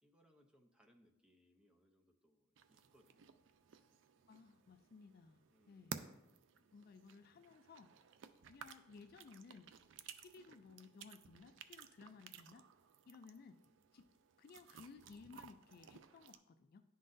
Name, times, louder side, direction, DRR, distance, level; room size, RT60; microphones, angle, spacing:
voice 1, 0.0-3.4 3.7-3.9 5.5-6.2 6.5-6.8, equal, 5° right, 2 dB, 0.6 m, -73 dB
sound 1, 2.6-16.4, right 7 dB, 65° right, 0.4 m, -56 dB
voice 2, 4.3-6.0 6.7-7.9 8.5-9.7 10.2-12.7 13.1-13.6 13.9-14.1 14.4-16.8, left 4 dB, 50° left, 8 dB, 0.3 m, -59 dB
10.5 x 3.9 x 2.6 m, 0.89 s
head